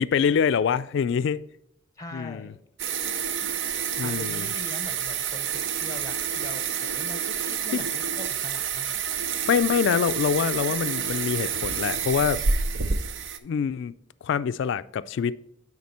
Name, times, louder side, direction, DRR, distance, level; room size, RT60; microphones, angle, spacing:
voice 1, 0.0-1.4 2.1-2.5 4.0-4.5 7.7-7.8 9.5-12.4 13.4-13.9 14.2-15.4, left 7 dB, 60° left, 0.3 m, -25 dB
voice 2, 2.0-2.6 4.0-9.0, left 2 dB, 15° left, 0.6 m, -41 dB
sound 1, 2.8-13.4, right 6 dB, 65° right, 0.6 m, -28 dB
9.5 x 4.1 x 4.2 m
head